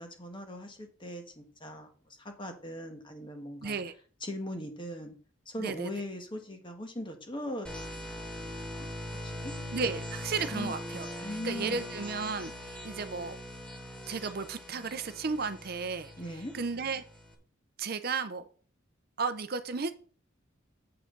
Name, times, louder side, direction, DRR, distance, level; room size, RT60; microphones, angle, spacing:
voice 1, 0.0-3.8 4.2-5.1 5.4-8.9 9.2-9.5 10.5-10.7 11.2-12.0 16.2-16.5, left 1 dB, 25° left, 5 dB, 1.4 m, -40 dB
voice 2, 3.6-3.9 5.6-5.9 9.7-13.4 14.1-16.1 16.6-17.0 17.8-18.5 19.2-19.9, right 4 dB, 50° right, 11 dB, 0.6 m, -34 dB
sound 1, 7.6-17.3, left 1 dB, 5° left, 1.2 m, -41 dB
8.0 x 7.6 x 3.9 m, 0.42 s
head